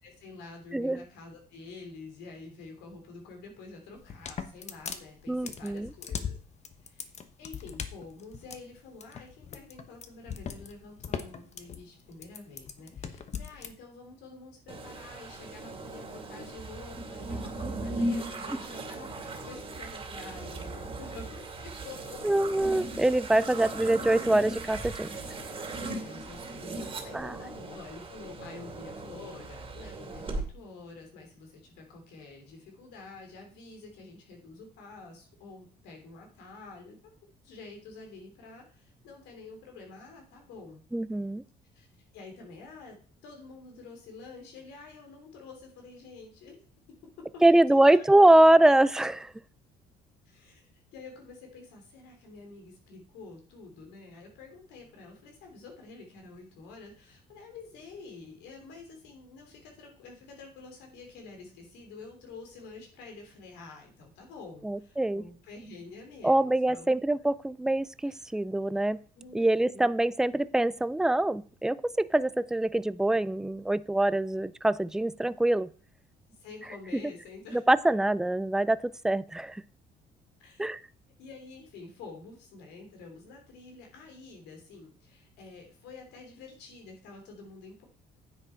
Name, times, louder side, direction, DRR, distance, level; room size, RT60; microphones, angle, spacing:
voice 1, 0.0-6.4 6.8-7.1 7.4-22.2 23.6-23.7 25.8-37.1 37.4-40.8 41.7-41.9 42.1-43.0 43.2-46.6 47.3-48.1 50.2-66.9 68.0-68.4 69.1-69.9 76.4-77.6 80.4-80.7 81.2-87.8, left 3 dB, 90° left, 2 dB, 3.4 m, -48 dB
voice 2, 0.7-1.0 5.3-5.9 22.2-25.1 27.1-27.4 40.9-41.4 47.4-49.3 64.6-65.2 66.2-69.0 69.3-75.7 77.5-79.6 80.6-80.8, right 1 dB, 5° right, 16 dB, 0.4 m, -24 dB
sound 1, 4.0-13.7, left 7 dB, 40° left, 1.1 m, -39 dB
sound 2, 14.7-30.4, right 2 dB, 30° right, 2.4 m, -38 dB
9.7 x 7.5 x 4.5 m, 0.42 s
cardioid pair, 110°, 17 cm